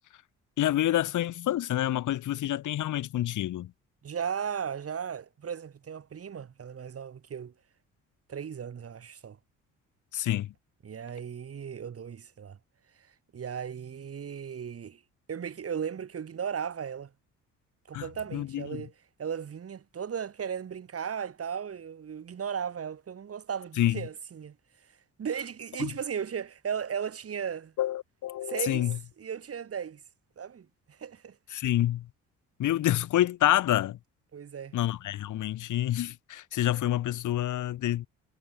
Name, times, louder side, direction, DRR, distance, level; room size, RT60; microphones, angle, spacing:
voice 1, 0.6-3.7 10.1-10.5 17.9-18.1 18.3-18.7 23.8-24.0 25.8-25.9 27.8-29.0 31.5-32.1 32.6-34.0 34.7-38.1, left 13 dB, 80° left, 4.5 m, -27 dB
voice 2, 4.0-7.5 8.3-9.4 10.8-12.6 13.3-15.0 15.3-17.1 17.9-18.9 19.2-24.5 25.2-27.7 28.5-28.9 29.2-30.0 30.4-31.4 34.3-34.8, right 7 dB, 50° right, 6.0 m, -36 dB
cardioid pair, 90°, 30 cm